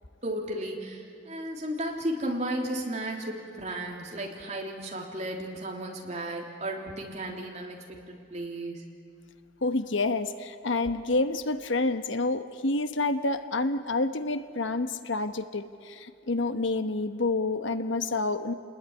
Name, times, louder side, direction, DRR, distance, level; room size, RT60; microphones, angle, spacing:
voice 1, 0.2-8.9, right 1 dB, 35° right, 0 dB, 3.4 m, -34 dB
voice 2, 9.6-18.5, left 2 dB, 70° left, 9 dB, 1.2 m, -28 dB
29.5 x 20.5 x 9.8 m, 2.4 s
head